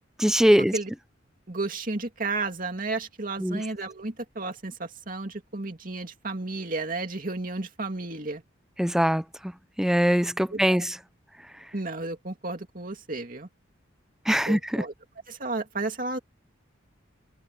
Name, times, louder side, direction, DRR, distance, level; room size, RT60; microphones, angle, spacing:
voice 1, 0.2-0.7 3.4-3.6 8.8-9.2 9.8-10.9 14.3-14.8, equal, 5° right, 0.6 m, -22 dB
voice 2, 1.5-8.4 10.5-10.8 11.7-13.5 14.5-14.9 15.3-16.2, right 3 dB, 45° right, 2.6 m, -32 dB
head